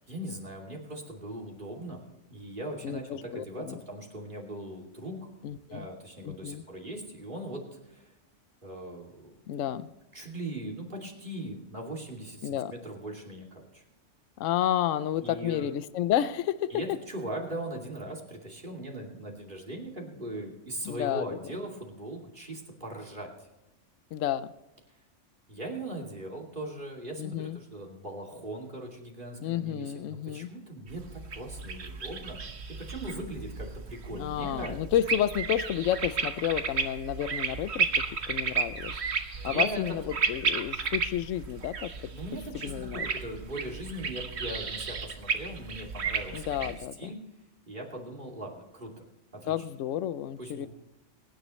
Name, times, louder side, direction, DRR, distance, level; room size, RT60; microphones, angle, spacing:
voice 1, 0.1-2.0 2.3-5.3 5.7-8.1 8.6-9.7 10.1-13.8 15.2-15.7 16.7-23.5 25.5-32.4 32.8-34.9 39.4-40.0 42.1-47.2 47.7-49.1 49.3-49.5 50.4-50.7, right 1 dB, 40° right, 0 dB, 2.9 m, -40 dB
voice 2, 2.8-3.8 5.4-5.9 6.2-6.6 9.5-9.9 12.4-12.7 14.4-16.7 20.8-21.4 24.1-24.5 27.2-27.6 29.4-30.5 34.1-37.9 38.3-38.9 39.4-42.1 42.6-43.1 46.3-47.1 49.5-50.7, left 11 dB, 85° left, 15 dB, 1.0 m, -31 dB
sound 1, 30.9-46.8, right 5 dB, 60° right, 1.4 m, -33 dB
23.5 x 10.5 x 3.2 m, 0.99 s
omnidirectional pair, 1.3 m